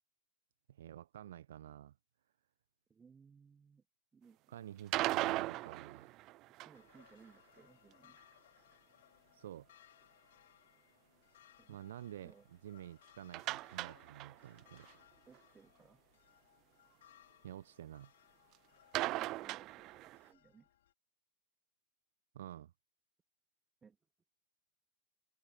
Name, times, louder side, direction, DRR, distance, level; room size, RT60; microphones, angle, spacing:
voice 1, 0.7-1.9 4.5-6.2 9.3-9.7 11.7-12.3 12.6-14.9 17.4-18.1 22.3-22.7, right 11 dB, 60° right, 1.0 m, -50 dB
voice 2, 2.9-3.8 4.1-4.4 6.5-8.2 11.6-11.8 12.2-12.5 15.3-16.0 19.1-20.7 23.8-24.0, right 5 dB, 15° right, 3.1 m, -62 dB
sound 1, 4.8-7.0 13.3-14.6 14.9-15.0 15.3-15.4 18.9-20.3, right 18 dB, 40° right, 0.6 m, -38 dB
sound 2, 6.7-20.9, left 12 dB, 60° left, 3.4 m, -66 dB
figure-of-eight pair, 90°, 0 cm